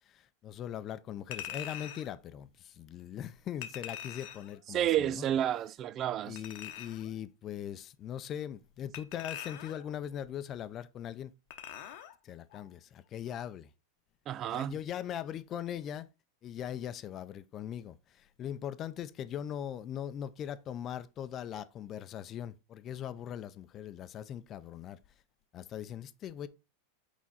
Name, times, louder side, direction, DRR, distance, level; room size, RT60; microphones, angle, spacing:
voice 1, 0.1-5.2 6.2-11.3 12.2-13.7 14.5-16.1 16.4-25.0 25.5-26.5, left 10 dB, 35° left, 0.6 m, -40 dB
Chink clink, 1.3-2.1 3.6-4.5 6.4-7.1 8.9-9.9 11.5-12.1 12.5-12.6, left 10 dB, 60° left, 1.0 m, -43 dB
voice 2, 4.7-6.4 14.3-14.7, right 11 dB, 40° right, 0.4 m, -30 dB
6.2 x 4.1 x 4.1 m
hypercardioid pair, 100°, 0 cm